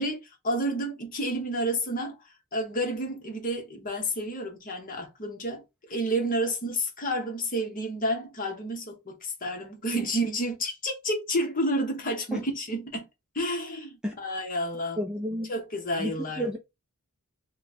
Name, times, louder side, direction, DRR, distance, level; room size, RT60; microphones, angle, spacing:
voice 1, 0.0-13.1 13.3-15.0 15.5-16.5, equal, 40° left, 1.0 m, -30 dB
voice 2, 15.0-15.5 16.0-16.6, equal, 5° right, 0.5 m, -31 dB
3.0 x 2.3 x 4.1 m
head